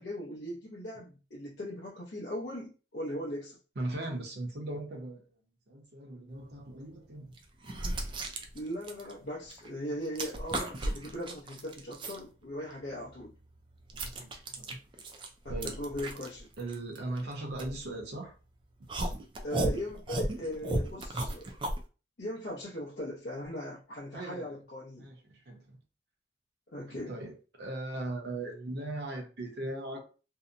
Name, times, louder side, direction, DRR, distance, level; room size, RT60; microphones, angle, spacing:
voice 1, 0.0-3.6 8.5-13.3 15.4-16.5 19.4-21.5 22.2-25.1 26.7-27.1, equal, 65° left, 0.6 m, -39 dB
voice 2, 3.8-5.3 5.7-7.4 13.9-14.8 15.5-15.9 16.6-18.3 24.1-24.6 25.0-25.8 26.9-30.2, right 2 dB, 60° right, 0.7 m, -39 dB
sound 1, 6.6-6.7 7.4-9.7 10.0-12.2 12.7-18.3 18.9-21.8, right 1 dB, 25° right, 0.3 m, -35 dB
2.7 x 2.0 x 2.4 m
head